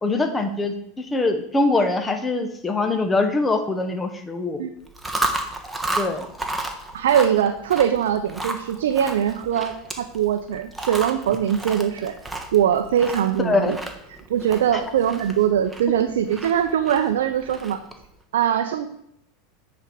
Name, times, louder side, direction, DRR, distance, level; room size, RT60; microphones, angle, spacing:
voice 1, 0.0-4.6 6.0-6.2 13.4-13.7 14.7-14.8, left 3 dB, 15° left, 6 dB, 1.0 m, -23 dB
Chewing mastication, 4.8-18.1, right 2 dB, 5° right, 1.2 m, -33 dB
voice 2, 6.9-12.2 12.5-13.8 14.1-17.8 18.3-18.9, right 9 dB, 85° right, 6 dB, 0.5 m, -22 dB
9.0 x 4.4 x 5.1 m, 0.76 s
hypercardioid pair, 105°, 0 cm